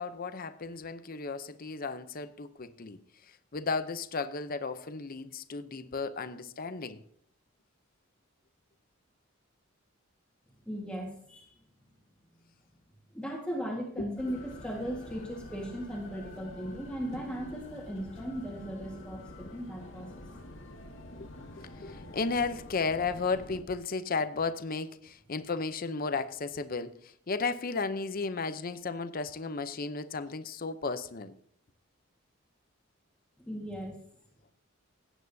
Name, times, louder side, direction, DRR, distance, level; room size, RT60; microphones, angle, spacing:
voice 1, 0.0-3.0 3.5-7.0 14.0-14.1 21.2-21.3 21.6-26.9 27.3-31.3, left 4 dB, 45° left, 0.7 m, -34 dB
voice 2, 10.6-11.5 13.1-20.4 33.5-34.0, equal, 5° left, 1.6 m, -37 dB
sound 1, 14.2-23.6, left 1 dB, 65° left, 1.7 m, -47 dB
17.0 x 9.0 x 2.7 m
head